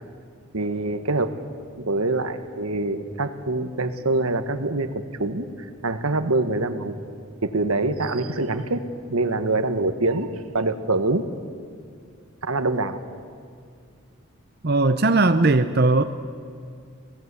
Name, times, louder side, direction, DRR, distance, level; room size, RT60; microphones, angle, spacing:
voice 1, 0.5-1.4 1.8-7.0 7.4-8.8 9.1-11.3 12.4-13.0, right 2 dB, 85° right, 9 dB, 1.5 m, -25 dB
voice 2, 14.6-16.0, right 2 dB, 45° right, 8 dB, 0.7 m, -18 dB
27.5 x 18.0 x 8.4 m, 2.3 s
head